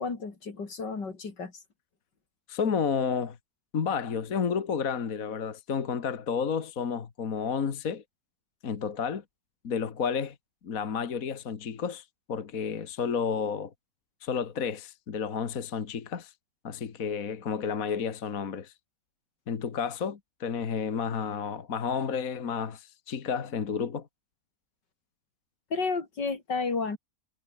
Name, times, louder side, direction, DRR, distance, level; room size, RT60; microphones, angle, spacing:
voice 1, 0.0-1.5 25.7-27.0, left 4 dB, 80° left, 3.9 m, -32 dB
voice 2, 2.5-3.4 3.7-8.0 8.6-9.2 9.6-10.4 10.6-13.7 14.2-16.3 16.6-18.7 19.5-24.1, left 6 dB, 55° left, 1.9 m, -31 dB
omnidirectional pair, 1.9 m